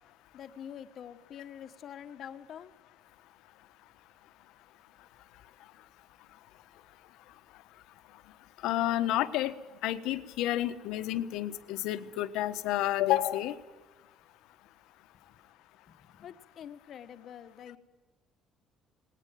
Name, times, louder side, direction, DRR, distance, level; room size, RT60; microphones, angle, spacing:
voice 1, 0.3-2.7 15.1-15.2 15.9-17.8, left 9 dB, 45° left, 10 dB, 1.3 m, -46 dB
voice 2, 8.6-9.5 9.8-13.5, left 14 dB, 80° left, 11 dB, 1.3 m, -30 dB
19.5 x 19.0 x 9.4 m, 1.2 s
cardioid pair, 170°, 0 cm